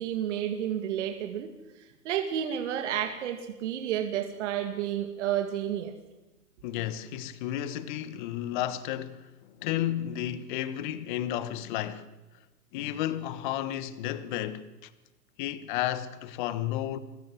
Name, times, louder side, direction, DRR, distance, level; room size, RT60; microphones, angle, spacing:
voice 1, 0.0-1.5 1.8-5.9, right 10 dB, 45° right, 2.4 m, -31 dB
voice 2, 6.6-12.1 12.7-14.9 15.4-17.0, left 12 dB, 30° left, 1.3 m, -32 dB
25.0 x 21.0 x 7.8 m
hypercardioid pair, 150°, 49 cm